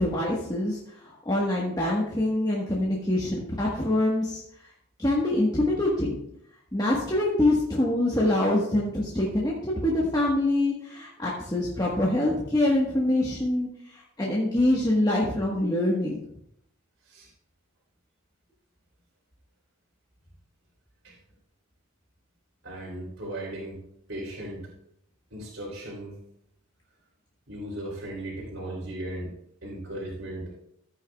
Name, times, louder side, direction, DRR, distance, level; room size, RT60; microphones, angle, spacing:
voice 1, 0.0-4.4 5.0-6.2 6.7-16.2, left 1 dB, 20° left, -4 dB, 1.4 m, -25 dB
voice 2, 22.6-23.8 24.1-24.7 25.3-26.2 27.5-29.3 29.6-30.6, right 1 dB, 60° right, -7 dB, 3.4 m, -37 dB
14.0 x 9.1 x 2.4 m, 0.73 s
head